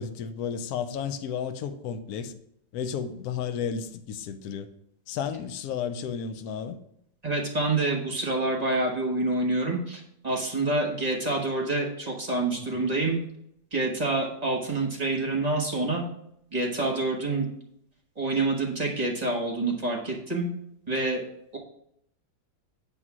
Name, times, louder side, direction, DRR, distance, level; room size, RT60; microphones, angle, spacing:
voice 1, 0.0-2.3 2.7-4.7 5.1-6.8 12.6-12.8, left 7 dB, 65° left, 1.0 m, -33 dB
voice 2, 7.2-13.2 13.7-16.0 16.5-17.5 18.2-20.5 20.9-21.2 21.5-21.6, right 2 dB, 25° right, 1.1 m, -27 dB
8.2 x 3.7 x 6.0 m
omnidirectional pair, 2.0 m